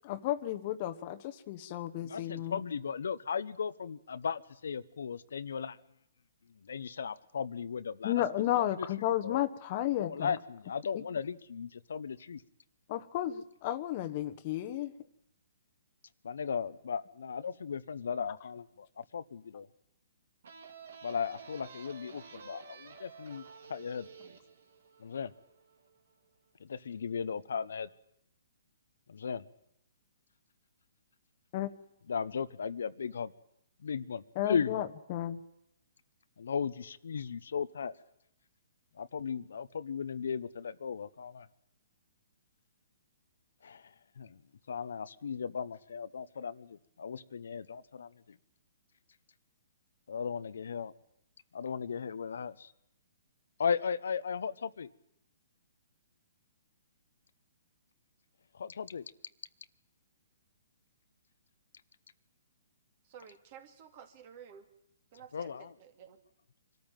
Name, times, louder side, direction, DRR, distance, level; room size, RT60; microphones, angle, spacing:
voice 1, 0.0-2.6 8.0-10.4 10.9-11.0 12.9-14.9 31.5-31.7 34.3-35.4, left 13 dB, 40° left, 11 dB, 1.2 m, -33 dB
voice 2, 2.0-5.8 6.6-8.2 8.6-8.9 9.2-9.4 10.0-12.4 16.2-18.9 19.1-19.7 21.0-23.4 23.7-24.1 25.0-25.3 26.6-27.9 29.1-29.4 32.1-33.3 33.8-34.9 36.4-37.9 39.0-41.5 43.6-43.9 44.2-44.4 44.7-48.4 50.1-50.9 51.5-52.7 53.6-54.9 58.5-59.1 65.3-65.7, left 6 dB, 75° left, 14 dB, 0.9 m, -36 dB
sound 1, 20.4-25.9, right 5 dB, 70° right, 2.5 m, -51 dB
voice 3, 63.0-64.7 65.1-66.2, right 8 dB, 40° right, 8 dB, 2.6 m, -52 dB
24.5 x 13.5 x 9.1 m, 0.80 s
hypercardioid pair, 150°, 0 cm